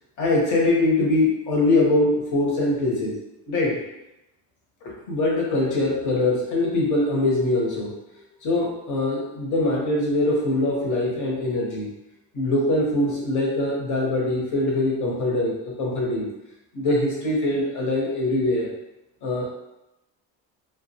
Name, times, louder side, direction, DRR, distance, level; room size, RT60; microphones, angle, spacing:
voice 1, 0.2-3.1 3.5-3.8 4.8-7.9 8.4-11.9 12.3-16.3 16.7-18.7 19.2-19.5, left 2 dB, 45° left, -3 dB, 0.9 m, -23 dB
2.2 x 2.2 x 2.7 m, 0.90 s
cardioid pair, 135°, 40 cm